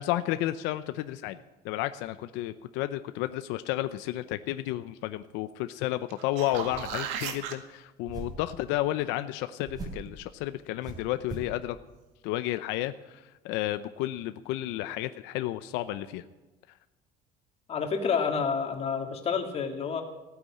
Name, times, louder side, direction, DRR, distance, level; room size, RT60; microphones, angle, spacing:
voice 1, 0.0-1.4 1.6-11.8 12.2-16.2, left 15 dB, 90° left, 11 dB, 0.7 m, -32 dB
sound 1, 6.1-7.6 12.3-12.4, right 8 dB, 90° right, 1.8 m, -35 dB
sound 2, 6.5-7.1 8.1-8.5 9.6-10.1 10.8-11.6, right 3 dB, 20° right, 3.6 m, -41 dB
voice 2, 17.7-20.0, left 6 dB, 35° left, 4 dB, 2.3 m, -29 dB
16.0 x 9.6 x 8.6 m, 1.1 s
cardioid pair, 155°, 18 cm